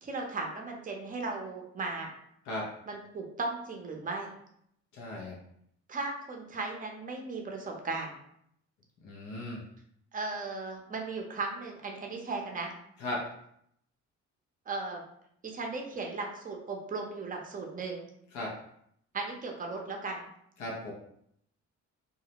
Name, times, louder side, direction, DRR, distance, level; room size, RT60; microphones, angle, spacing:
voice 1, 0.0-2.1 2.9-4.3 5.9-8.1 10.1-12.7 14.7-15.0 15.5-18.1 19.1-20.3, right 3 dB, 30° right, 1 dB, 0.6 m, -36 dB
voice 2, 4.9-5.4 9.0-9.6 13.0-13.2 18.3-18.5 20.6-20.9, left 1 dB, 75° left, -3 dB, 0.7 m, -36 dB
2.4 x 2.0 x 2.8 m, 0.71 s
cardioid pair, 90°, 30 cm